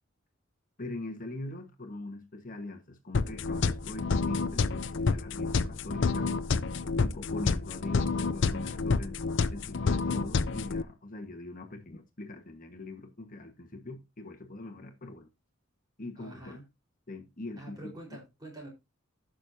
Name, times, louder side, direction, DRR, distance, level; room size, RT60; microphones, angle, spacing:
voice 1, 0.8-6.3 7.0-9.2 9.5-15.3 16.0-16.6 17.1-17.9, left 2 dB, 40° left, 1.4 m, -42 dB
sound 1, 3.1-10.8, left 4 dB, 60° left, 0.5 m, -29 dB
voice 2, 16.2-16.6 17.6-18.7, right 1 dB, 20° right, 4.3 m, -46 dB
15.5 x 6.4 x 2.8 m
head